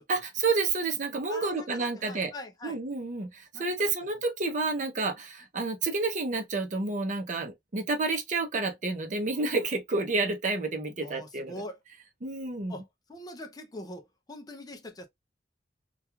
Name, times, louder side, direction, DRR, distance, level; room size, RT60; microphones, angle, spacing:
voice 1, 0.1-2.3 2.6-11.5 12.2-12.7, right 3 dB, 45° right, 0.6 m, -30 dB
voice 2, 1.3-2.8 3.5-3.9 11.0-11.8 12.7-15.1, left 1 dB, 20° left, 0.4 m, -43 dB
2.3 x 2.3 x 2.9 m
head